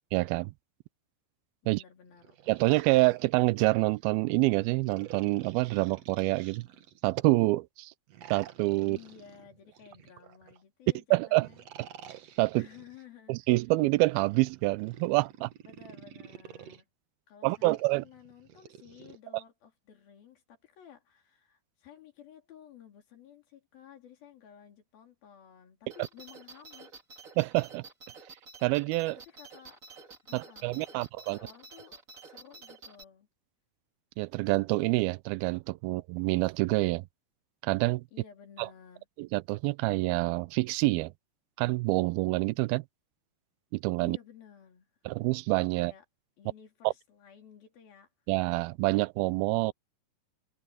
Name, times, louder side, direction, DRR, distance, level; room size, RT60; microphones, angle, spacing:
voice 1, 0.1-0.5 1.7-1.8 2.5-6.7 7.0-7.9 8.3-9.0 11.1-11.5 12.4-12.7 13.3-15.5 17.4-18.0 27.4-27.8 28.6-29.2 30.3-31.4 34.2-37.1 37.6-38.0 38.6-38.7 39.2-41.1 41.6-42.8 43.7-44.2 45.1-45.9 46.8-46.9 48.3-49.7, right 22 dB, 85° right, 2.4 m, -27 dB
voice 2, 1.6-2.4 8.8-11.7 12.5-13.5 15.7-16.9 17.3-26.9 29.3-29.8 30.3-30.8 31.2-33.3 38.1-39.1 44.0-44.9 45.7-46.0 46.4-48.1, left 9 dB, 75° left, 5.2 m, -54 dB
sound 1, 2.1-4.0 4.8-7.2 8.1-10.6 11.4-13.0 14.0-16.8 17.5-19.2, right 10 dB, 60° right, 1.8 m, -51 dB
sound 2, 25.9-33.0, right 4 dB, 25° right, 2.0 m, -50 dB
omnidirectional pair, 4.3 m